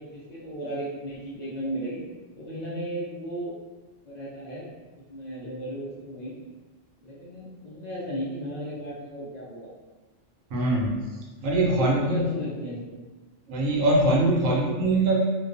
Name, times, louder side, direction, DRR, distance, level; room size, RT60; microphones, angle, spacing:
voice 1, 0.0-2.0 2.4-3.5 4.1-4.7 5.1-6.3 7.0-9.7 11.7-13.0, equal, 60° left, -8 dB, 0.4 m, -35 dB
voice 2, 10.5-10.9 11.4-12.3 13.5-15.2, right 1 dB, 80° right, -2 dB, 1.0 m, -22 dB
2.3 x 2.2 x 2.5 m, 1.2 s
omnidirectional pair, 1.3 m